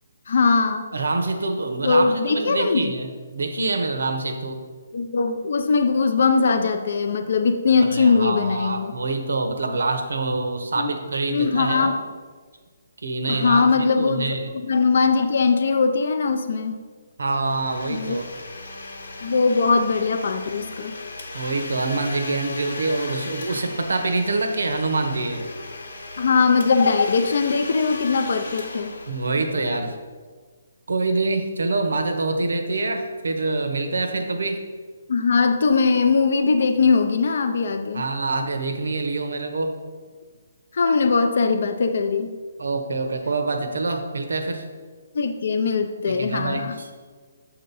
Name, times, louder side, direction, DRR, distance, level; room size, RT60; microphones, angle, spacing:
voice 1, 0.3-0.9 1.8-3.0 4.9-8.9 10.8-10.9 11.3-12.0 13.3-14.2 14.5-16.8 17.9-18.2 19.2-21.0 26.2-28.9 35.1-38.0 40.7-42.4 45.1-46.9, left 4 dB, 55° left, 7 dB, 0.4 m, -20 dB
voice 2, 0.9-4.6 7.8-11.9 13.0-14.5 17.2-18.3 21.3-25.5 29.1-30.0 30.9-34.6 37.9-39.8 42.6-44.7 46.1-46.9, right 3 dB, 90° right, 5 dB, 0.8 m, -25 dB
Domestic sounds home sounds, 17.3-29.9, left 2 dB, 80° left, 0.9 m, -37 dB
7.4 x 2.9 x 5.3 m, 1.5 s
hypercardioid pair, 170°, 0 cm